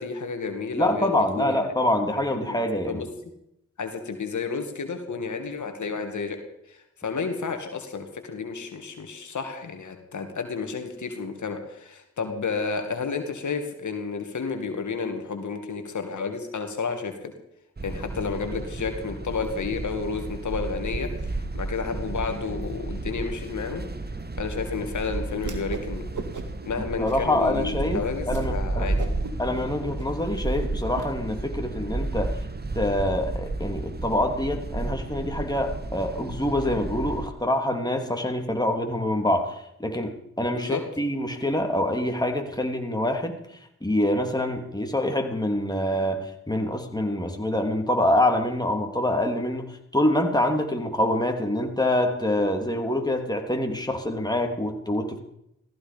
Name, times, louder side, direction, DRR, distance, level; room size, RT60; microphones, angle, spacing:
voice 1, 0.0-1.6 2.2-2.6 2.9-3.1 3.8-6.4 6.7-17.3 17.8-23.8 24.4-26.1 26.7-29.1 40.5-40.8, left 5 dB, 70° left, 5 dB, 2.3 m, -31 dB
voice 2, 0.7-3.1 27.0-28.9 29.4-32.4 32.7-43.4 43.8-55.2, left 1 dB, 15° left, 3 dB, 3.3 m, -25 dB
sound 1, 17.8-37.3, right 2 dB, 30° right, 1.5 m, -32 dB
Whoosh swoosh swish, 25.4-25.9 26.1-26.7 27.0-27.5 27.9-28.0 28.3-28.5 28.8-31.1, right 4 dB, 75° right, 2.3 m, -37 dB
16.0 x 15.0 x 5.3 m, 0.79 s
supercardioid pair, 40°, 31 cm